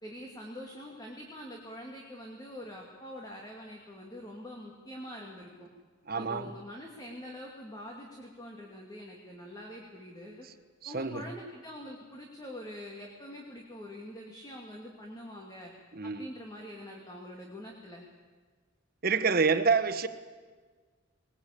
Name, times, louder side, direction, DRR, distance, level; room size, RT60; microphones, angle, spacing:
voice 1, 0.0-5.7 6.1-10.5 10.9-15.7 16.0-18.1, equal, 20° left, 2.5 m, -45 dB
voice 2, 6.1-6.5 10.9-11.2 16.0-16.3 19.0-20.1, right 5 dB, 50° right, 1.2 m, -27 dB
21.0 x 21.0 x 8.6 m
head